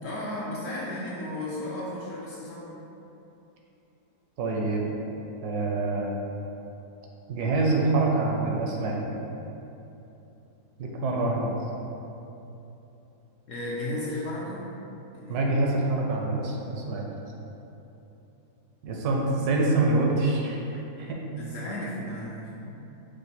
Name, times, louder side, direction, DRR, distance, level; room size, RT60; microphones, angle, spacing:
voice 1, 0.0-2.6 11.0-11.2 13.5-14.7 15.1-15.4 21.4-22.5, left 1 dB, 70° left, -6 dB, 0.8 m, -34 dB
voice 2, 4.4-4.9 5.4-6.1 7.3-9.0 10.8-11.6 15.3-17.0 18.8-21.2, right 2 dB, 75° right, -1 dB, 1.1 m, -26 dB
5.0 x 2.1 x 4.1 m, 2.9 s
omnidirectional pair, 1.8 m